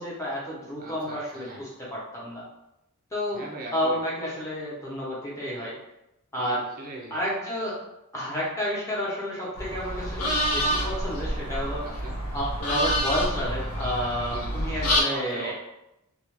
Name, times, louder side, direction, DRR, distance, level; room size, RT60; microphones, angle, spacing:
voice 1, 0.0-2.4 3.1-3.4 3.7-5.8 6.3-6.6 7.1-7.8 8.1-11.8 12.3-15.6, equal, 15° left, -6 dB, 0.8 m, -30 dB
voice 2, 0.8-1.7 3.3-4.0 6.4-7.2 11.8-12.2 14.3-15.6, right 2 dB, 40° right, -1 dB, 0.4 m, -40 dB
sound 1, 9.6-15.0, equal, 85° left, 0.6 m, -28 dB
2.4 x 2.1 x 3.0 m, 0.88 s
head